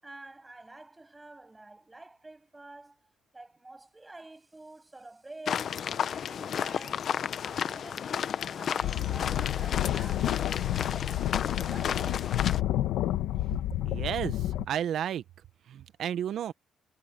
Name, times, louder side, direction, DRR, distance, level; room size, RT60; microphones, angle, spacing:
voice 1, 0.0-3.0 3.3-5.7 6.1-12.9, right 2 dB, 15° right, 7.3 m, -49 dB
sound 1, 5.5-12.6, left 8 dB, 60° left, 0.8 m, -33 dB
sound 2, 8.8-14.7, left 13 dB, 90° left, 1.6 m, -30 dB
voice 2, 13.8-15.2 15.7-16.5, right 10 dB, 70° right, 0.9 m, -32 dB
cardioid pair, 90°, 0 cm